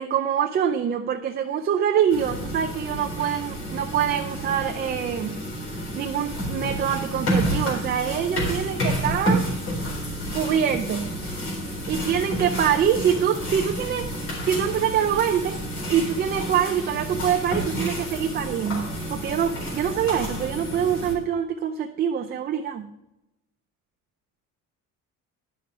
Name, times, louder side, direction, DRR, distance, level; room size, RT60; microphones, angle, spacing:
voice 1, 0.0-5.4 5.9-9.5 10.3-11.1 11.9-14.1 14.4-15.6 15.9-22.9, right 8 dB, 30° right, 4 dB, 0.5 m, -25 dB
sound 1, 2.1-21.1, equal, 50° left, 4.1 m, -30 dB
11.0 x 6.1 x 4.7 m, 0.88 s
cardioid pair, 165°, 32 cm